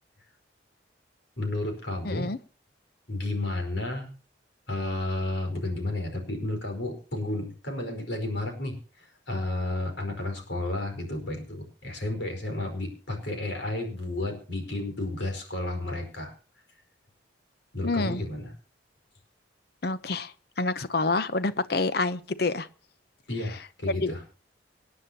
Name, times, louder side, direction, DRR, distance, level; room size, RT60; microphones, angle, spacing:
voice 1, 1.4-2.3 3.1-4.1 4.7-16.3 17.7-18.5 23.3-24.2, left 2 dB, 75° left, 4 dB, 4.9 m, -32 dB
voice 2, 2.0-2.4 17.8-18.2 19.8-22.7 24.0-24.1, left 3 dB, 55° left, 14 dB, 0.8 m, -28 dB
26.5 x 9.6 x 2.9 m, 0.35 s
head